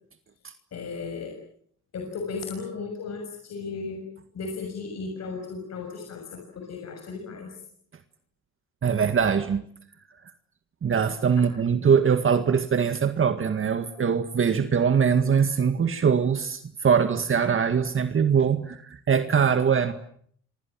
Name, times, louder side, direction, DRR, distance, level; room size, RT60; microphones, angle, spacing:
voice 1, 0.7-1.3 1.9-4.0 4.3-7.6 11.3-11.4, left 4 dB, 60° left, 3 dB, 6.6 m, -35 dB
voice 2, 8.8-9.6 10.8-19.9, right 7 dB, 45° right, 9 dB, 1.9 m, -22 dB
28.0 x 25.0 x 7.5 m, 0.63 s
cardioid pair, 90°, 30 cm